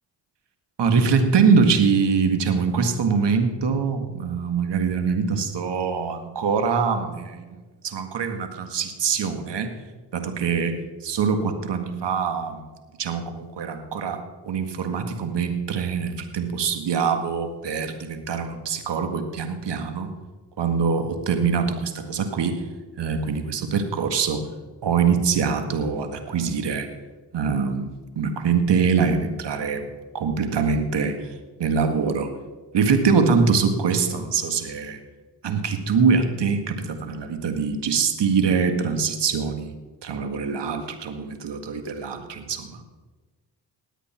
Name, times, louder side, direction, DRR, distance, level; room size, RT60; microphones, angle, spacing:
voice 1, 0.8-9.7 10.1-10.7 11.1-12.6 13.0-20.1 20.6-22.6 23.0-24.4 24.8-26.9 27.3-29.9 30.1-31.3 31.6-32.3 32.7-35.0 35.4-39.7 40.0-42.8, right 5 dB, 65° right, 7 dB, 1.8 m, -23 dB
19.0 x 8.2 x 4.4 m, 1.3 s
supercardioid pair, 50°, 45 cm